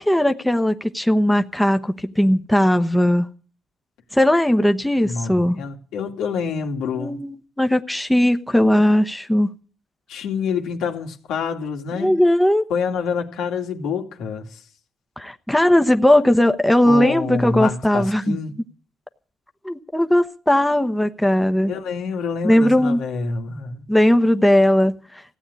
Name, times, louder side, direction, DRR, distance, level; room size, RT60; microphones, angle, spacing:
voice 1, 0.0-3.3 4.1-5.6 7.0-9.5 11.9-12.6 15.2-18.4 19.6-21.8 22.4-23.0 23.9-25.2, left 1 dB, 5° left, 1.1 m, -18 dB
voice 2, 5.0-7.2 10.1-12.2 12.7-14.6 16.8-18.5 21.7-23.9, left 5 dB, 85° left, 2.4 m, -27 dB
16.0 x 8.7 x 9.6 m
cardioid pair, 90°, 0 cm